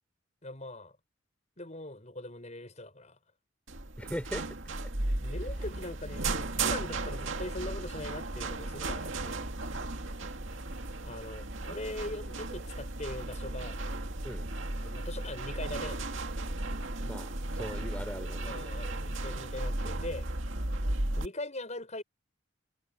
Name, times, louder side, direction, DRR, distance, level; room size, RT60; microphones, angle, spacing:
voice 1, 0.4-1.0 1.6-3.2 5.2-9.5 11.0-13.9 14.8-16.1 17.8-17.9 18.4-20.3 21.2-22.0, left 2 dB, 35° left, 6.9 m, -41 dB
sound 1, 3.7-21.3, right 2 dB, 65° right, 2.3 m, -35 dB
voice 2, 4.0-4.4 14.2-14.5 17.0-18.6, equal, 5° left, 4.7 m, -39 dB
head